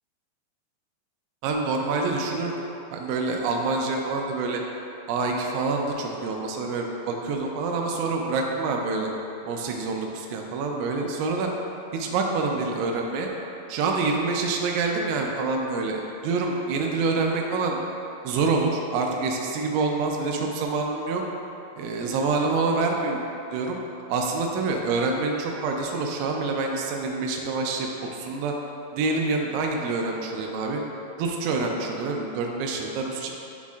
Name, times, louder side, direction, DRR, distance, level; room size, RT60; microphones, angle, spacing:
voice 1, 1.4-2.5 2.9-4.6 5.1-9.1 9.4-11.5 11.9-13.3 13.7-17.8 18.2-21.2 21.8-23.2 23.5-23.8 24.1-28.5 28.9-30.8 31.2-33.3, right 3 dB, 85° right, 1 dB, 2.9 m, -26 dB
11.0 x 4.1 x 2.4 m, 2.8 s
omnidirectional pair, 5.5 m